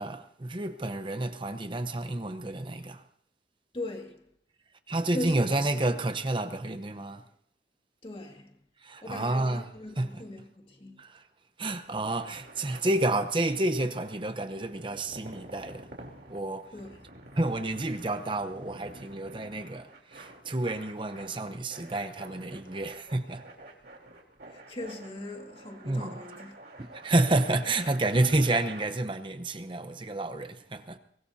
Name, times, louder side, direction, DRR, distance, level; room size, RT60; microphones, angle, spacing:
voice 1, 0.0-3.0 4.9-7.2 8.8-10.2 11.0-11.2 11.6-15.9 16.3-16.7 17.4-23.4 25.8-26.2 26.8-31.0, right 2 dB, 30° right, 0.8 m, -30 dB
voice 2, 3.7-4.3 5.1-5.5 8.0-8.6 9.0-11.0 16.7-17.0 24.5-26.6, left 1 dB, 30° left, 2.2 m, -39 dB
sound 1, 11.8-28.8, right 2 dB, 60° right, 3.4 m, -49 dB
23.5 x 19.0 x 2.8 m
head